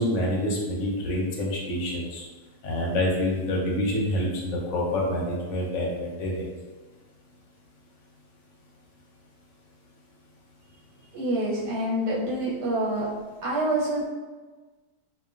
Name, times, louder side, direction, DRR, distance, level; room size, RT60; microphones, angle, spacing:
voice 1, 0.0-2.2 2.6-6.5, left 1 dB, 60° left, -2 dB, 0.9 m, -27 dB
voice 2, 11.1-13.1 13.4-14.1, right 1 dB, 80° right, -7 dB, 1.3 m, -26 dB
2.9 x 2.5 x 2.4 m, 1.3 s
omnidirectional pair, 1.8 m